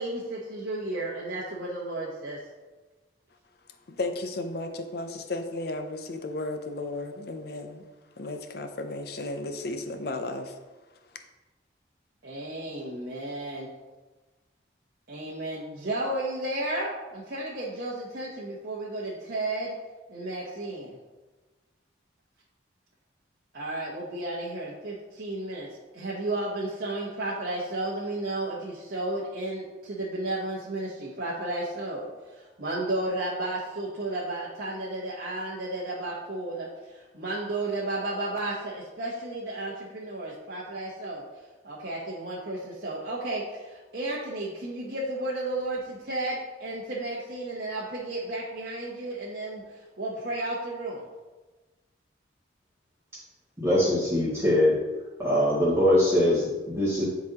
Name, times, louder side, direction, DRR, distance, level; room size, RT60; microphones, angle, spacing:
voice 1, 0.0-2.4 12.2-13.7 15.1-19.7 20.1-21.0 23.5-25.7 25.9-41.2 41.6-51.0, right 2 dB, 55° right, -6 dB, 0.9 m, -33 dB
voice 2, 3.9-7.8 8.2-10.5, left 2 dB, 55° left, 7 dB, 0.6 m, -34 dB
voice 3, 53.6-54.7 55.2-57.0, left 1 dB, 15° right, -10 dB, 2.2 m, -22 dB
10.5 x 4.0 x 2.9 m, 1.2 s
head